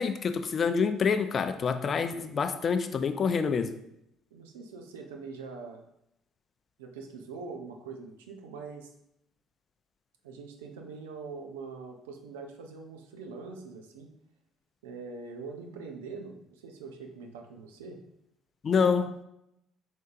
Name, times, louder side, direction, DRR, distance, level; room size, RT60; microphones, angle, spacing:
voice 1, 0.0-3.8 18.6-19.2, left 5 dB, 40° left, 10 dB, 0.5 m, -27 dB
voice 2, 4.3-5.8 6.8-8.9 10.2-14.1 14.8-18.0, right 4 dB, 80° right, 3 dB, 0.6 m, -43 dB
5.2 x 3.8 x 2.5 m, 0.79 s
hypercardioid pair, 55°, 0 cm